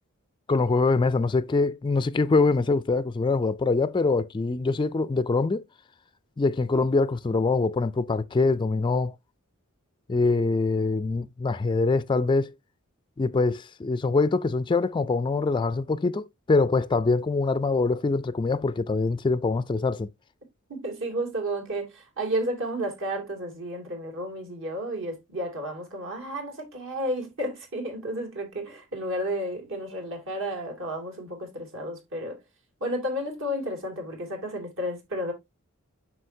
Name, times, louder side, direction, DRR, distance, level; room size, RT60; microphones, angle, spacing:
voice 1, 0.5-5.6 6.4-9.1 10.1-12.5 13.2-20.1, left 3 dB, 20° left, 0.3 m, -24 dB
voice 2, 20.7-32.4 32.8-35.3, equal, 65° right, 2.6 m, -32 dB
7.7 x 6.3 x 2.7 m
head